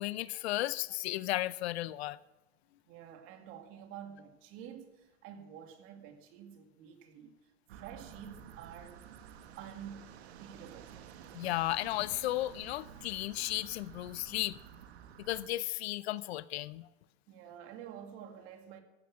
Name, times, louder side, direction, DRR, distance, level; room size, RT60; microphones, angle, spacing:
voice 1, 0.0-2.2 11.3-14.6 15.2-16.9, left 16 dB, 65° left, 0.7 m, -34 dB
voice 2, 2.9-9.1 9.6-10.1 10.4-11.0 17.3-18.8, right 9 dB, 40° right, 2.2 m, -49 dB
sound 1, 7.7-15.5, right 8 dB, 70° right, 1.8 m, -52 dB
15.0 x 10.0 x 7.2 m
supercardioid pair, 150°, 33 cm